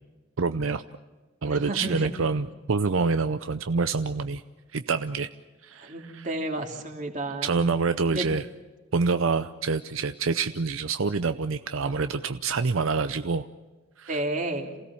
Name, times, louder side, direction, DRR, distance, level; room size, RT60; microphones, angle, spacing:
voice 1, 0.4-0.8 1.4-4.4 4.7-5.3 5.6-6.3 7.4-8.4 8.9-13.5 14.0-14.2, right 4 dB, 75° right, 10 dB, 0.7 m, -26 dB
voice 2, 1.4-2.1 5.8-7.6 8.1-8.2 14.1-14.7, right 1 dB, 40° right, 2 dB, 3.0 m, -32 dB
28.0 x 17.0 x 7.0 m, 1.3 s
head